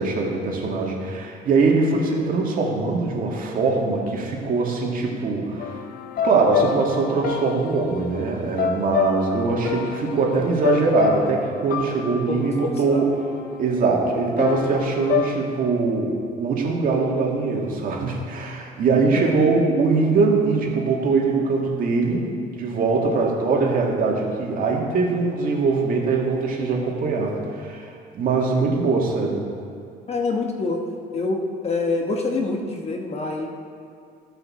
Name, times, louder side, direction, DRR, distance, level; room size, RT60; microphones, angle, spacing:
voice 1, 0.0-5.8 6.2-13.0 13.6-29.4, right 4 dB, 55° right, -1 dB, 1.9 m, -22 dB
sound 1, 5.6-13.6 14.4-15.3, left 8 dB, 60° left, 0.7 m, -28 dB
voice 2, 12.3-13.1 30.1-30.8 31.1-33.5, left 3 dB, 35° left, 2 dB, 1.2 m, -26 dB
15.5 x 5.6 x 4.2 m, 2.4 s
cardioid pair, 110°, 17 cm